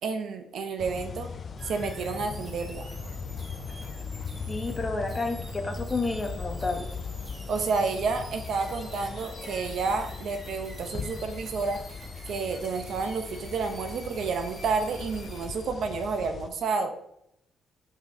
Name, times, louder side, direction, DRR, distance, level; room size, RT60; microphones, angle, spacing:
voice 1, 0.0-1.3 1.6-2.9 7.5-11.8 12.3-16.9, right 4 dB, 65° right, 7 dB, 0.7 m, -30 dB
sound 1, 0.8-16.5, left 5 dB, 45° left, 0.4 m, -39 dB
sound 2, 1.6-15.5, right 1 dB, 30° right, 2.0 m, -48 dB
voice 2, 4.5-6.8, left 3 dB, 20° left, 3 dB, 1.1 m, -30 dB
6.1 x 5.5 x 2.8 m, 0.77 s
cardioid pair, 90°, 0 cm